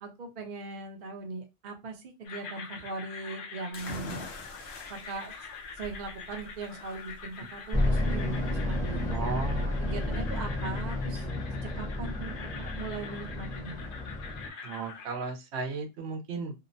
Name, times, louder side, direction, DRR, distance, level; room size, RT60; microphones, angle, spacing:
voice 1, 0.0-4.3 4.6-5.3 5.8-9.2 9.8-11.3 11.5-13.8, right 3 dB, 50° right, 4 dB, 0.7 m, -40 dB
sound 1, 2.2-15.1, left 5 dB, 60° left, 0.7 m, -45 dB
sound 2, 3.7-11.2, left 2 dB, 85° left, 1.0 m, -45 dB
sound 3, 7.7-14.5, left 1 dB, 5° left, 0.7 m, -31 dB
voice 2, 9.1-10.6 14.6-16.6, right 4 dB, 85° right, 5 dB, 0.9 m, -36 dB
2.8 x 2.0 x 2.5 m, 0.24 s
omnidirectional pair, 1.1 m